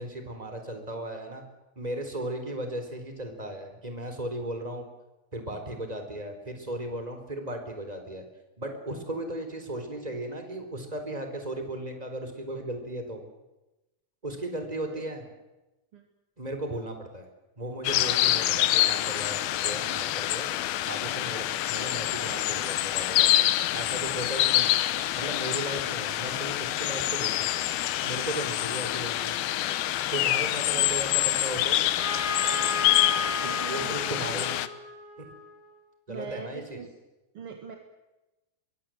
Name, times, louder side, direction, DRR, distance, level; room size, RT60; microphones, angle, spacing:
voice 1, 0.0-1.5 1.8-4.8 5.3-8.2 8.6-13.2 14.2-15.2 16.4-17.3 17.6-20.5 20.9-23.3 23.7-24.7 25.1-27.5 28.0-29.3 30.1-31.8 33.4-34.6 35.2-35.3 36.1-36.8, right 1 dB, 10° right, 5 dB, 3.6 m, -36 dB
sound 1, 17.8-34.7, left 14 dB, 85° left, 2.9 m, -26 dB
Trumpet, 32.0-35.7, left 4 dB, 55° left, 5.2 m, -34 dB
voice 2, 33.4-34.6 36.1-36.9 37.3-37.8, right 5 dB, 45° right, 4 dB, 2.1 m, -42 dB
24.0 x 22.5 x 7.8 m, 1.0 s
omnidirectional pair, 4.2 m